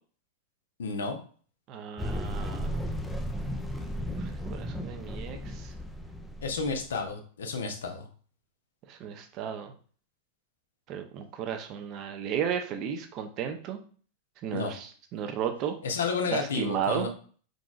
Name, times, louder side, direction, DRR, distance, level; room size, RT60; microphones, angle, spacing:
voice 1, 0.8-1.2 6.4-8.1 14.5-14.7 15.8-17.1, left 4 dB, 65° left, 4 dB, 0.8 m, -31 dB
voice 2, 1.7-2.7 4.1-5.7 8.9-9.7 10.9-13.8 14.4-15.8 16.3-17.1, right 8 dB, 40° right, 5 dB, 0.7 m, -34 dB
sound 1, 2.0-7.1, equal, ahead, 0.5 m, -35 dB
4.7 x 3.9 x 2.4 m, 0.43 s
figure-of-eight pair, 90°, 0 cm